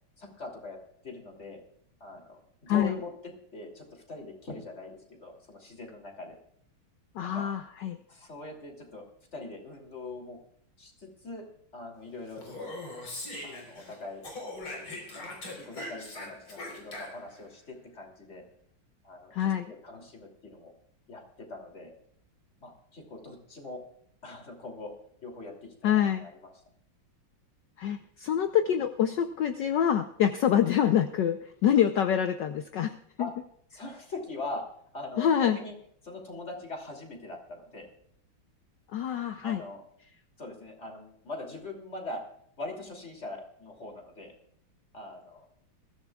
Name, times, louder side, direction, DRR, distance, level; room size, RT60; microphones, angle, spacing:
voice 1, 0.2-0.8 1.0-1.6 2.0-6.4 7.2-7.4 8.1-10.4 10.8-11.5 11.7-12.7 13.4-14.2 14.7-18.4 19.0-20.7 21.1-21.9 22.6-23.8 24.2-24.9 25.2-26.3 33.2-33.3 33.7-34.6 34.9-35.7 36.0-37.9 39.4-39.8 40.4-42.2 42.6-44.3 44.9-45.5, left 2 dB, 30° left, 2 dB, 3.2 m, -42 dB
voice 2, 7.1-8.0 19.3-19.7 25.8-26.2 27.8-33.3 35.2-35.6 38.9-39.6, left 9 dB, 65° left, 8 dB, 1.3 m, -26 dB
Speech, 12.3-13.9 14.2-17.4, left 2 dB, 80° left, 4.9 m, -41 dB
21.5 x 15.5 x 2.4 m, 0.69 s
omnidirectional pair, 2.3 m